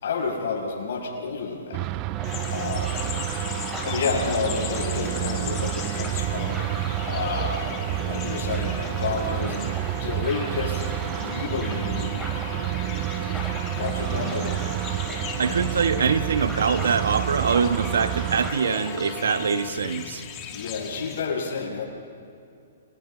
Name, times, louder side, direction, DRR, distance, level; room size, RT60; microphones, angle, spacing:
voice 1, 0.0-1.9 2.5-3.1 3.8-6.7 7.0-7.7 8.1-9.6 10.0-10.9 11.2-12.3 13.8-14.7 20.5-21.8, left 5 dB, 65° left, -1 dB, 6.8 m, -30 dB
sound 1, 1.7-18.5, right 18 dB, 30° right, 0.5 m, -30 dB
sound 2, 2.1-19.7, equal, 5° right, 4.6 m, -37 dB
sound 3, 2.2-21.2, left 8 dB, 25° left, 2.2 m, -39 dB
voice 2, 15.4-20.2, right 6 dB, 85° right, 9 dB, 1.4 m, -24 dB
30.0 x 23.0 x 4.0 m, 2.5 s
hypercardioid pair, 155°, 0 cm